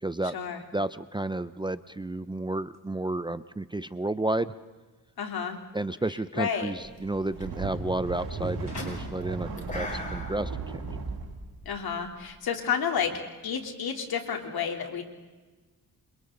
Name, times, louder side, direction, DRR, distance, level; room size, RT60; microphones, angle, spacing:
voice 1, 0.0-0.4 0.7-4.5 5.7-10.8, right 2 dB, 10° right, 13 dB, 0.6 m, -31 dB
sound 1, 1.6-2.0 2.7-2.8 3.6-4.1 4.4-4.5 5.3-5.5 6.5-6.6 6.8-10.1 10.5-11.0, left 3 dB, 45° left, 6.7 m, -48 dB
voice 2, 5.2-5.6 6.3-6.7 11.7-15.0, left 7 dB, 70° left, 3 dB, 3.5 m, -30 dB
sound 2, 6.8-7.1 7.4-12.4, left 1 dB, 20° left, 6.0 m, -41 dB
sound 3, 7.1-11.3, right 4 dB, 75° right, 6.9 m, -36 dB
29.5 x 27.5 x 3.9 m, 1.3 s
cardioid pair, 100°, 38 cm